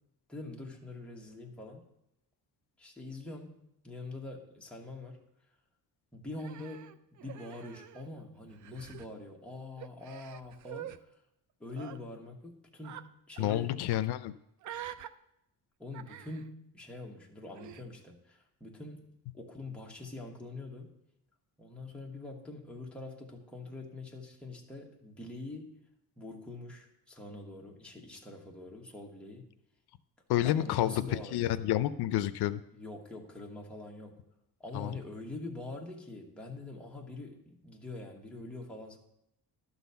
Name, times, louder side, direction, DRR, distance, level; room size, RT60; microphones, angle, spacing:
voice 1, 0.3-1.8 2.8-5.2 6.1-10.9 11.6-13.9 15.8-20.9 21.6-25.8 26.2-29.5 30.4-31.7 32.7-34.3 34.6-39.0, left 2 dB, 5° left, -2 dB, 1.3 m, -44 dB
Human voice, 6.4-8.2 8.5-9.1 9.8-11.0 11.7-12.0 12.8-13.1 13.4-13.6 14.6-15.1 15.9-16.5 17.5-17.8, right 11 dB, 50° right, 0.5 m, -46 dB
voice 2, 13.4-14.3 30.3-32.6 34.7-34.9, left 13 dB, 80° left, 13 dB, 0.5 m, -29 dB
12.0 x 4.1 x 6.8 m, 0.80 s
cardioid pair, 155°, 38 cm